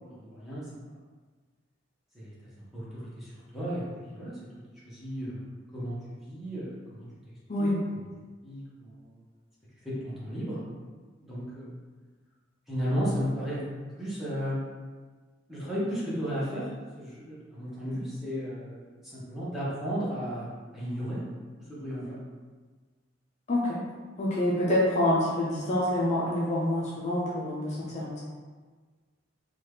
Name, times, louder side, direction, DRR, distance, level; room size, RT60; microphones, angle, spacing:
voice 1, 0.0-0.7 2.1-4.4 4.8-5.4 5.7-7.1 7.6-7.8 8.4-9.2 9.8-10.6 11.2-11.6 12.7-13.6 14.0-14.6 15.5-21.2 21.7-22.2, equal, ahead, -10 dB, 0.9 m, -34 dB
voice 2, 23.5-23.8 24.2-28.2, left 1 dB, 35° left, -5 dB, 0.4 m, -27 dB
2.9 x 2.3 x 3.3 m, 1.4 s
head